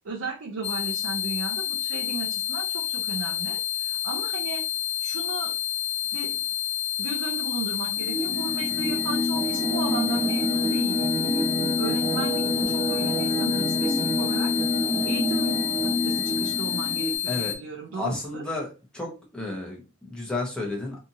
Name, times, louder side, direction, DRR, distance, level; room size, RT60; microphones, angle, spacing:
voice 1, 0.0-4.7 5.0-5.6 6.1-6.4 7.0-14.5 15.1-18.4, right 4 dB, 90° right, -1 dB, 0.5 m, -35 dB
sound 1, 0.6-17.6, left 12 dB, 30° left, 0.4 m, -29 dB
sound 2, 8.0-17.2, left 1 dB, 30° right, 0.5 m, -27 dB
voice 2, 17.9-18.7 18.9-21.0, left 2 dB, 5° left, -3 dB, 0.8 m, -32 dB
2.8 x 2.5 x 2.6 m, 0.32 s
head